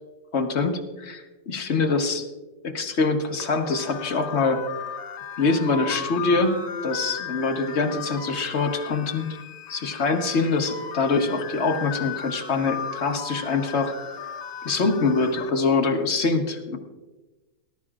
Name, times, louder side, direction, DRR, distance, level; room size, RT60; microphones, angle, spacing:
voice 1, 0.3-2.3 2.6-4.6 5.4-6.6 6.8-9.2 9.7-13.9 14.6-16.8, left 3 dB, 45° left, 4 dB, 1.1 m, -24 dB
sound 1, 3.4-15.5, left 7 dB, 75° left, 1.4 m, -36 dB
19.0 x 12.0 x 2.4 m, 1.2 s
omnidirectional pair, 1.9 m